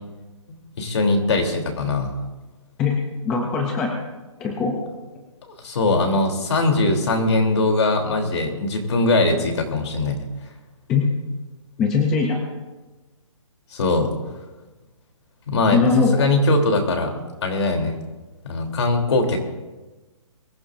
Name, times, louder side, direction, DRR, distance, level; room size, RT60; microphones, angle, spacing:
voice 1, 0.8-2.1 5.6-10.2 13.7-14.1 15.5-15.8 16.1-17.1 17.4-17.9 18.4-19.4, left 2 dB, 55° left, 3 dB, 3.1 m, -21 dB
voice 2, 3.2-3.9 4.4-4.7 10.9-11.1 11.8-12.4 15.7-16.3, left 4 dB, 5° left, 1 dB, 0.3 m, -20 dB
23.5 x 14.5 x 2.5 m, 1.2 s
hypercardioid pair, 170°, 17 cm